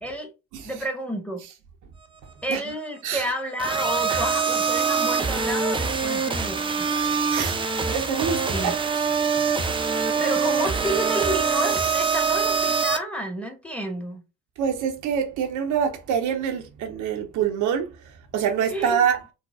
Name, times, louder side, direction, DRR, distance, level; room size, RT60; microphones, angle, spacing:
voice 1, 0.6-1.4 2.4-6.9 8.5-8.8 10.2-14.2 18.7-19.1, equal, 5° left, 1.0 m, -30 dB
sound 1, 3.6-13.0, right 5 dB, 15° right, 0.5 m, -24 dB
voice 2, 7.9-8.8 14.6-17.9 18.3-19.2, right 8 dB, 55° right, 0.6 m, -25 dB
3.9 x 2.0 x 2.3 m
hypercardioid pair, 60°, 37 cm